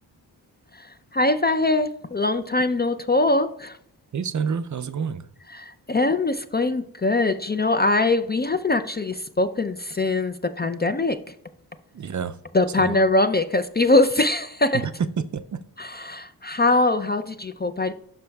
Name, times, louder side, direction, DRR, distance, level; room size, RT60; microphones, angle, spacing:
voice 1, 0.7-3.8 5.5-11.2 12.5-14.8 15.8-17.9, left 2 dB, 25° left, 10 dB, 0.3 m, -22 dB
voice 2, 4.1-5.3 11.9-12.4 12.8-13.0 14.7-14.9 15.2-15.6, right 6 dB, 45° right, 12 dB, 0.4 m, -28 dB
12.0 x 5.7 x 2.2 m, 0.70 s
wide cardioid pair, 95°, 43 cm